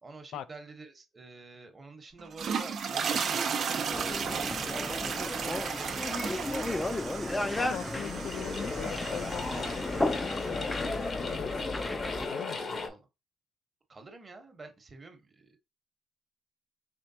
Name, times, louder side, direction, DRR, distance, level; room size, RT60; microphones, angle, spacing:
voice 1, 0.0-3.2 3.5-6.6 12.9-13.1 13.9-15.6, right 3 dB, 30° right, 1.1 m, -48 dB
sound 1, 2.2-10.5, right 6 dB, 60° right, 0.6 m, -35 dB
sound 2, 3.9-12.3, left 2 dB, 15° left, 0.5 m, -34 dB
voice 2, 7.6-11.7 12.3-12.8, left 9 dB, 80° left, 0.4 m, -41 dB
sound 3, 7.8-12.9, left 3 dB, 45° left, 1.0 m, -37 dB
4.4 x 3.3 x 2.8 m
cardioid pair, 90°, 0 cm